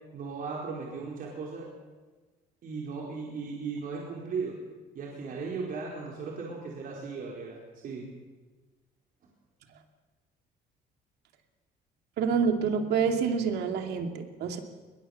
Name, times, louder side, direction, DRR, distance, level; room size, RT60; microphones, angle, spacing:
voice 1, 0.1-1.7 2.6-4.5 4.9-8.0, right 4 dB, 55° right, -2 dB, 4.5 m, -37 dB
voice 2, 12.2-14.6, right 6 dB, 75° right, 5 dB, 2.6 m, -27 dB
21.5 x 20.0 x 7.2 m, 1.3 s
cardioid pair, 110°, 17 cm